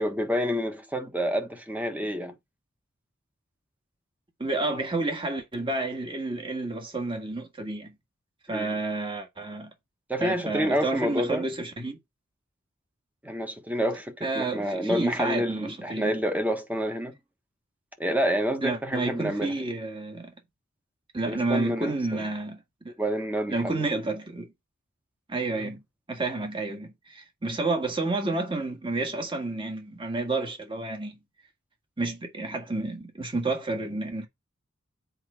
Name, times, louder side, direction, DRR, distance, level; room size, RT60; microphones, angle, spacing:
voice 1, 0.0-2.3 8.5-8.8 10.1-11.4 13.2-17.1 18.0-19.5 21.3-22.3 23.0-23.8 25.5-25.7, equal, 10° right, 1.2 m, -28 dB
voice 2, 4.4-7.9 8.5-9.7 10.2-12.0 14.2-16.2 18.6-20.3 21.1-22.9 23.5-24.5 25.3-25.8 26.1-31.2 32.0-34.3, right 2 dB, 25° right, 1.7 m, -30 dB
7.9 x 4.9 x 4.6 m
head